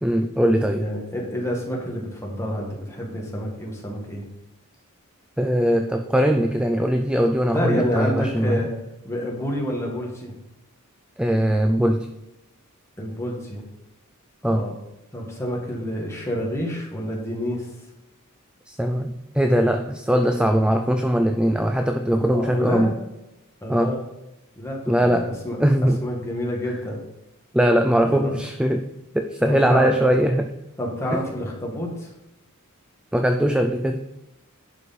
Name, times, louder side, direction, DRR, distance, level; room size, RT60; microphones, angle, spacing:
voice 1, 0.0-0.8 5.4-8.6 11.2-12.1 14.4-14.7 18.7-23.0 23.7-23.9 24.9-25.3 25.6-26.0 27.5-28.9 29.1-30.5 31.1-31.2 33.1-34.0, equal, 5° right, 6 dB, 0.4 m, -21 dB
voice 2, 0.7-4.3 7.5-8.7 9.0-10.3 13.0-13.6 14.4-14.8 15.1-17.7 22.1-22.9 23.6-24.1 24.6-25.6 26.0-27.0 28.0-28.4 29.5-29.9 30.8-32.1, equal, 15° left, -2 dB, 1.9 m, -28 dB
11.0 x 4.9 x 4.2 m, 0.95 s
head